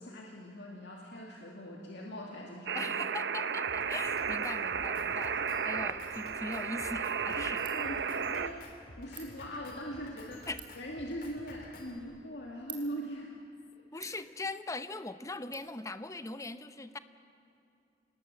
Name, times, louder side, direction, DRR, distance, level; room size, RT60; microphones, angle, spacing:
voice 1, 0.0-2.9 7.4-10.5 10.8-13.3 13.9-14.1, equal, 65° left, -2 dB, 2.3 m, -42 dB
voice 2, 2.7-7.6 10.5-10.6 13.9-17.0, left 2 dB, 15° left, 12 dB, 0.7 m, -40 dB
sound 1, 2.7-8.5, right 6 dB, 65° right, 0.8 m, -33 dB
Drum kit, 3.7-12.0, left 1 dB, 50° left, 2.7 m, -51 dB
Ratchet pawl, 6.5-15.6, right 8 dB, 25° right, 3.5 m, -55 dB
27.5 x 19.5 x 7.4 m, 2.6 s
head